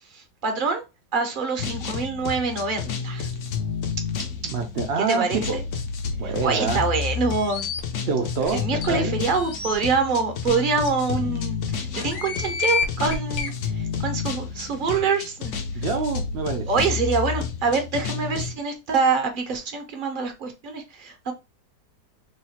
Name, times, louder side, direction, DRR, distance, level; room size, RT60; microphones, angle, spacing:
voice 1, 0.1-0.8 1.1-3.3 5.1-5.6 6.2-7.7 8.5-15.8 16.7-21.3, right 4 dB, 40° right, 0.8 m, -25 dB
sound 1, 1.6-18.5, left 6 dB, 60° left, 0.9 m, -30 dB
voice 2, 4.4-5.6 6.2-6.8 8.1-9.2 15.7-16.7, right 4 dB, 75° right, 0.5 m, -26 dB
sound 2, 7.3-7.8 8.4-8.5 8.8-8.9 9.3-9.7 10.5-10.6 10.9-11.0 11.9-13.5, left 5 dB, 80° left, 1.5 m, -28 dB
3.1 x 2.4 x 4.2 m
omnidirectional pair, 1.6 m